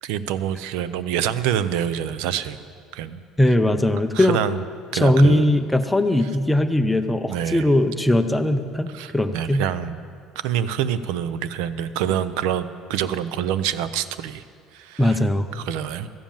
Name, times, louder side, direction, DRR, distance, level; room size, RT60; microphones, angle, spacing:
voice 1, 0.0-2.6 2.9-3.2 4.1-4.6 4.9-5.5 6.2-6.3 7.3-7.7 8.9-10.0 10.4-14.4 14.7-15.2 15.5-16.1, right 10 dB, 85° right, 14 dB, 0.5 m, -26 dB
voice 2, 3.4-4.4 4.9-9.6 15.0-15.5, left 1 dB, 5° left, 8 dB, 0.4 m, -19 dB
14.0 x 7.3 x 8.8 m, 2.2 s
cardioid pair, 170°, 0 cm